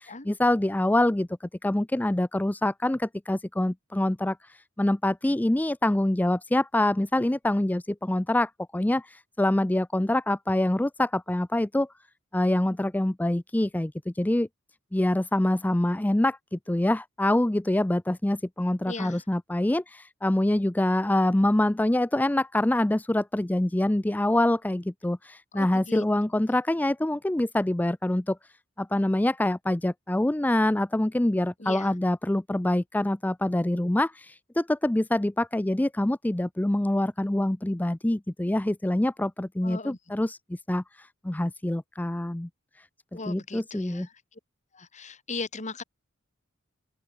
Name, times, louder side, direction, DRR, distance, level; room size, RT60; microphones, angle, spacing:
voice 1, 0.0-11.9 12.3-14.5 14.9-28.4 28.8-42.5 42.8-42.9 43.3-44.1, left 1 dB, 10° left, 0.4 m, -25 dB
voice 2, 18.9-19.2 25.5-26.0 31.6-31.9 39.6-40.0 43.1-44.1 44.7-45.8, left 3 dB, 35° left, 2.8 m, -38 dB
open air
head